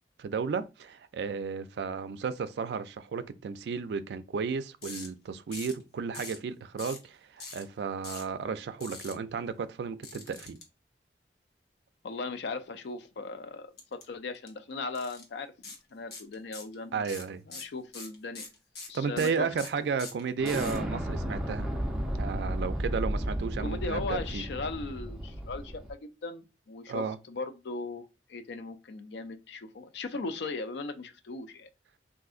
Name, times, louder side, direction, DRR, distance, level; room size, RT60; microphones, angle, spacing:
voice 1, 0.2-10.6 16.9-17.4 18.9-21.7 22.2-24.5 26.9-27.2, right 5 dB, 70° right, 0.3 m, -33 dB
sound 1, 4.8-5.1 5.5-5.8 6.1-6.4 6.8-7.1 7.4-7.6 8.0-8.3 8.8-9.1 10.0-10.6 13.8-14.0 14.3-14.5 14.9-15.2 15.6-15.8 16.1-16.7 17.0-20.8, left 4 dB, 60° left, 0.9 m, -43 dB
voice 2, 12.0-17.1 17.5-18.5 18.9-19.5 23.6-31.7, left 3 dB, 75° left, 0.4 m, -38 dB
Explosion, 20.4-25.9, equal, 5° right, 0.5 m, -33 dB
3.7 x 2.5 x 2.4 m
head